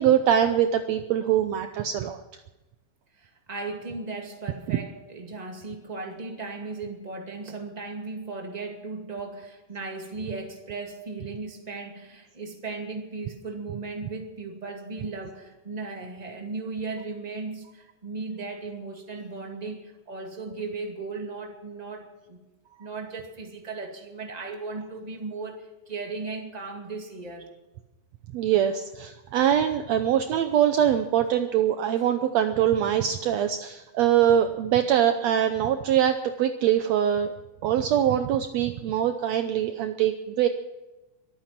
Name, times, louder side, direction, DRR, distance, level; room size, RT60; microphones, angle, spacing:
voice 1, 0.0-2.2 4.7-4.8 28.3-37.3 37.6-40.5, right 10 dB, 85° right, 8 dB, 1.5 m, -23 dB
voice 2, 3.2-22.4 22.8-27.5, right 3 dB, 15° right, 2 dB, 1.8 m, -36 dB
23.5 x 9.1 x 6.0 m, 1.1 s
omnidirectional pair, 4.0 m